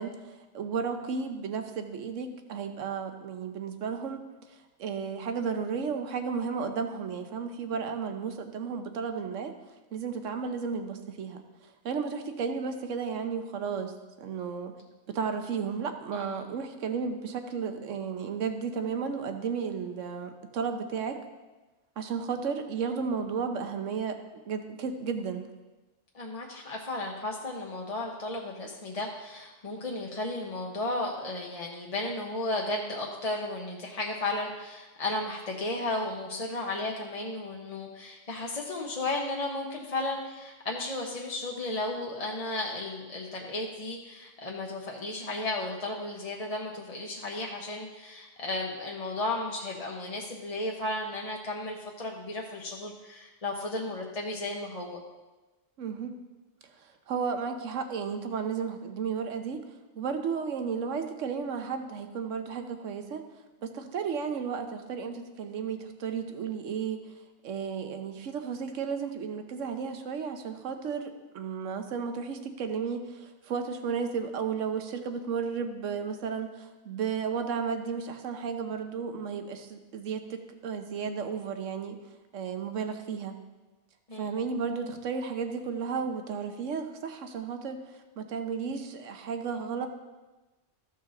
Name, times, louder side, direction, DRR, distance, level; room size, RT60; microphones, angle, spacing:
voice 1, 0.0-4.2 4.8-9.6 9.9-11.4 11.8-14.7 15.1-21.2 22.0-24.2 24.5-25.5 55.8-56.2 56.8-59.6 60.0-63.2 63.6-67.0 67.4-82.0 82.3-83.4 84.1-87.8 88.2-89.9, right 6 dB, 80° right, 7 dB, 1.2 m, -33 dB
voice 2, 26.1-55.0 84.1-84.3, left 2 dB, 35° left, -1 dB, 0.8 m, -34 dB
14.0 x 5.6 x 3.8 m, 1.2 s
omnidirectional pair, 1.3 m